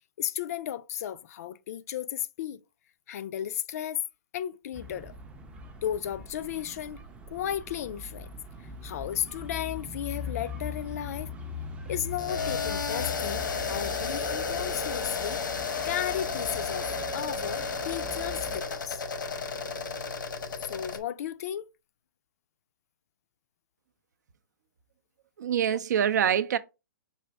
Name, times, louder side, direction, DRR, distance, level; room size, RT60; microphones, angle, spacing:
voice 1, 0.2-2.6 3.1-4.0 4.3-5.2 5.8-8.3 8.6-11.3 11.9-15.4 15.8-19.0 20.6-21.7 25.7-25.8, left 10 dB, 50° left, 0.4 m, -34 dB
sound 1, 4.7-18.6, left 3 dB, 10° right, 0.5 m, -41 dB
sound 2, 12.2-21.0, left 5 dB, 85° left, 0.9 m, -32 dB
voice 2, 25.4-26.6, right 9 dB, 65° right, 0.5 m, -25 dB
5.5 x 2.5 x 3.3 m
hypercardioid pair, 140°, 10 cm